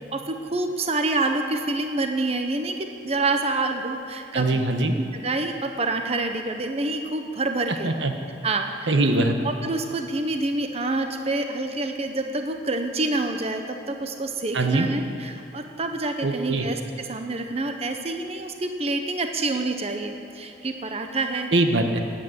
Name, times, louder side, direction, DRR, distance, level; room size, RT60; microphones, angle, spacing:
voice 1, 0.1-4.6 5.0-7.9 8.4-8.9 9.4-21.5, right 2 dB, 35° right, 5 dB, 0.9 m, -27 dB
voice 2, 4.3-4.9 7.8-8.1 8.9-9.3 14.5-14.9 16.2-16.7 21.5-22.0, right 2 dB, 85° right, 5 dB, 1.3 m, -22 dB
18.5 x 8.5 x 7.9 m, 2.8 s
head